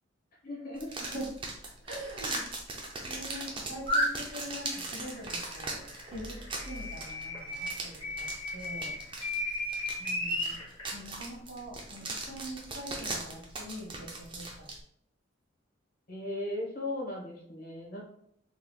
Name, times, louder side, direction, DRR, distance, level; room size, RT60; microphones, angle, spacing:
voice 1, 0.4-0.9 16.1-18.0, left 1 dB, 50° left, -2 dB, 1.1 m, -37 dB
sound 1, 0.8-14.8, right 2 dB, 25° right, 0.5 m, -40 dB
voice 2, 1.8-2.4 3.0-9.0 10.0-10.6 10.9-14.7, right 1 dB, 70° right, -2 dB, 1.3 m, -43 dB
sound 2, 3.9-4.1 4.7-7.7 8.0-10.8, left 1 dB, 25° left, 1.5 m, -33 dB
3.7 x 3.1 x 2.3 m, 0.71 s
head